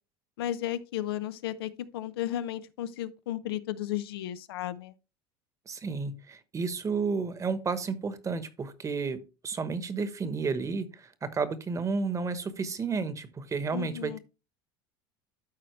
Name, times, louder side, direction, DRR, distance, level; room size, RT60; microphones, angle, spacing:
voice 1, 0.4-4.9 13.7-14.2, left 12 dB, 90° left, 0.6 m, -34 dB
voice 2, 5.7-14.2, right 4 dB, 25° right, 1.1 m, -32 dB
12.5 x 4.3 x 3.1 m
supercardioid pair, 105°, 12 cm